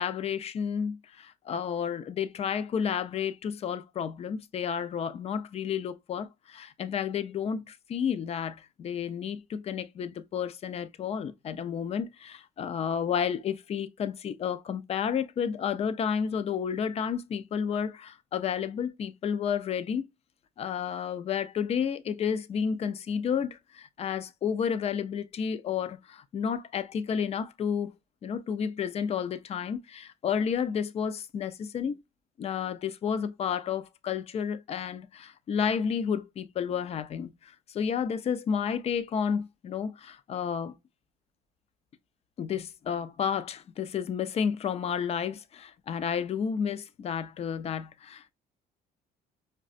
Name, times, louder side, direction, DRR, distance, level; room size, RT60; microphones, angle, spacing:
voice 1, 0.0-20.1 20.6-27.9 28.2-32.0 32.4-40.7 42.4-48.3, left 7 dB, 40° left, 0.4 m, -31 dB
4.7 x 2.2 x 2.5 m
cardioid pair, 110°, 17 cm